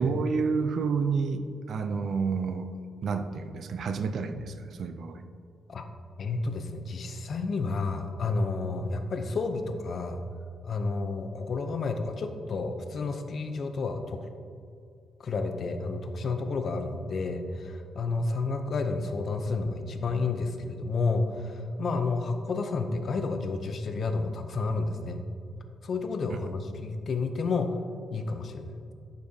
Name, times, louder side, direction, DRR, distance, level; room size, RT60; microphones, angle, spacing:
voice 1, 0.0-2.7 3.0-5.2 26.4-26.5, right 5 dB, 55° right, 8 dB, 0.3 m, -29 dB
voice 2, 6.2-10.2 10.6-14.3 15.2-25.3 25.8-27.8 28.1-28.8, left 3 dB, 45° left, 6 dB, 0.5 m, -30 dB
11.0 x 5.3 x 2.7 m, 2.4 s
wide cardioid pair, 165°, 0 cm